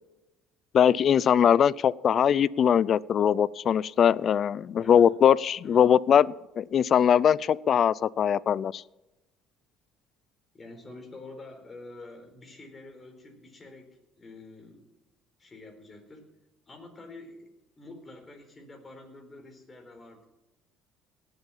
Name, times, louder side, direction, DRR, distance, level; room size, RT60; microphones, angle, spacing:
voice 1, 0.7-8.8, left 8 dB, 45° left, 22 dB, 0.4 m, -21 dB
voice 2, 4.8-5.1 5.6-5.8 10.5-14.9 15.4-16.3 16.7-20.3, left 2 dB, 25° left, 4 dB, 4.3 m, -47 dB
18.0 x 8.0 x 7.3 m, 0.99 s
cardioid pair, 110°, 0 cm